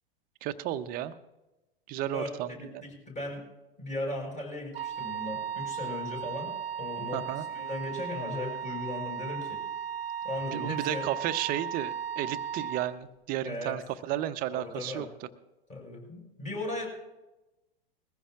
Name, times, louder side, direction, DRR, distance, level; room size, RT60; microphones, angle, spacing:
voice 1, 0.4-1.1 1.9-2.8 7.1-7.5 10.5-15.1, right 12 dB, 30° right, 12 dB, 0.7 m, -33 dB
voice 2, 2.1-3.4 3.8-9.6 10.2-11.1 13.4-13.7 14.5-15.0 15.7-16.9, left 2 dB, 25° left, -1 dB, 5.2 m, -37 dB
Wind instrument woodwind instrument, 4.7-12.9, right 8 dB, 80° right, 0.5 m, -36 dB
21.0 x 15.0 x 2.5 m, 1.0 s
figure-of-eight pair, 100°, 30 cm